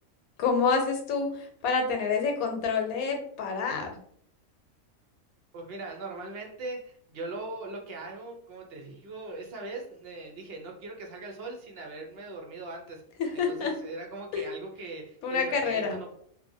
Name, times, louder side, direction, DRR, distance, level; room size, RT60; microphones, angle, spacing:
voice 1, 0.4-4.0 13.2-13.7 14.3-14.4 15.2-16.0, left 5 dB, 85° left, 3 dB, 1.1 m, -28 dB
voice 2, 5.5-13.0 13.3-16.1, right 2 dB, 60° right, 1 dB, 0.7 m, -40 dB
2.8 x 2.1 x 2.6 m, 0.64 s
omnidirectional pair, 1.5 m